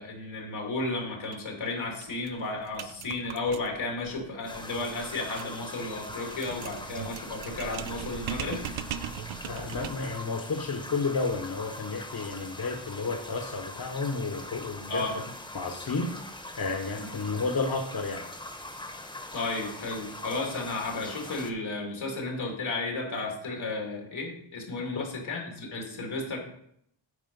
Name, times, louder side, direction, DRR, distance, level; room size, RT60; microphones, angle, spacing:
voice 1, 0.0-8.6 14.9-15.1 16.9-17.1 19.3-26.4, left 3 dB, 90° left, 0 dB, 2.5 m, -33 dB
sound 1, 1.2-1.4 1.7-1.8 2.0-10.2, right 9 dB, 85° right, 0.6 m, -40 dB
sound 2, 4.5-21.5, left 1 dB, 10° left, 0.9 m, -42 dB
voice 2, 9.4-15.0 15.5-18.2 24.9-25.1, left 4 dB, 50° left, 3 dB, 1.1 m, -32 dB
9.9 x 4.9 x 5.3 m, 0.71 s
wide cardioid pair, 105°, 46 cm